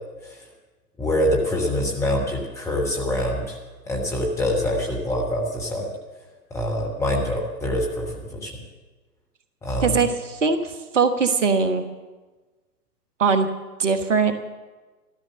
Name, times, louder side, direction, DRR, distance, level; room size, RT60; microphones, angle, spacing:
voice 1, 1.0-3.6 3.9-5.9 6.5-8.5 9.6-10.0, left 1 dB, 5° left, -2 dB, 1.1 m, -25 dB
voice 2, 9.8-11.9 13.2-13.5 13.8-14.3, right 5 dB, 50° right, 8 dB, 1.3 m, -21 dB
14.0 x 13.5 x 6.3 m, 1.3 s
figure-of-eight pair, 125°, 47 cm